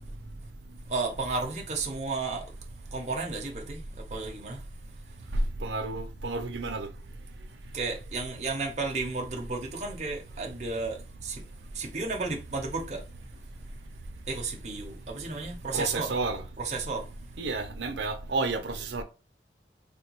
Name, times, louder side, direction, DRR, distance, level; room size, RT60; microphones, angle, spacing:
voice 1, 0.9-2.5 2.9-4.7 7.7-11.4 11.7-13.0 14.3-16.1 16.6-17.1, right 3 dB, 40° right, 0.7 m, -33 dB
voice 2, 5.6-6.9 15.7-16.4 17.4-19.0, right 3 dB, 85° right, 0.5 m, -31 dB
3.4 x 2.2 x 2.9 m
head